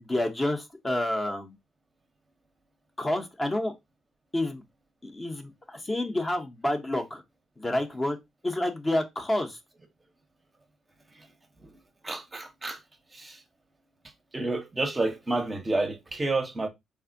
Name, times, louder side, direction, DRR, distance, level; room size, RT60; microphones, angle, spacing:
voice 1, 0.0-1.6 3.0-3.7 4.3-4.6 5.0-7.2 7.6-8.2 8.4-9.6, left 1 dB, 20° left, 0.6 m, -29 dB
voice 2, 12.0-12.8 13.1-13.4 14.3-16.7, right 2 dB, 20° right, 0.6 m, -30 dB
3.4 x 2.1 x 2.5 m
cardioid pair, 90°, 0 cm